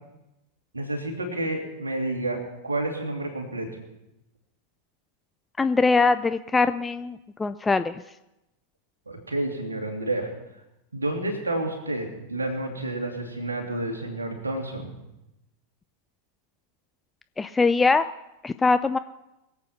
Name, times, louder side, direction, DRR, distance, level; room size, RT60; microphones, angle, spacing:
voice 1, 0.7-3.7 9.1-10.3 10.9-15.0, right 2 dB, 75° right, 3 dB, 2.7 m, -30 dB
voice 2, 5.6-8.0 17.4-18.1 18.4-19.0, left 4 dB, 10° left, 12 dB, 0.4 m, -22 dB
22.5 x 8.4 x 5.7 m, 0.92 s
figure-of-eight pair, 90°, 0 cm